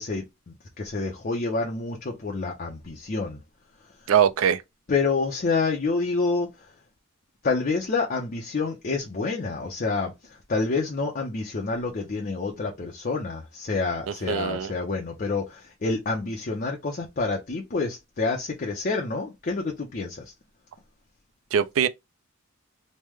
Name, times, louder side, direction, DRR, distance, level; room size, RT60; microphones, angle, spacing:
voice 1, 0.0-3.4 4.0-4.1 4.9-6.7 7.4-20.3, left 3 dB, 40° left, 0.6 m, -28 dB
voice 2, 4.1-4.6 14.3-14.7 21.5-21.9, right 8 dB, 75° right, 0.4 m, -22 dB
3.1 x 2.1 x 3.4 m
head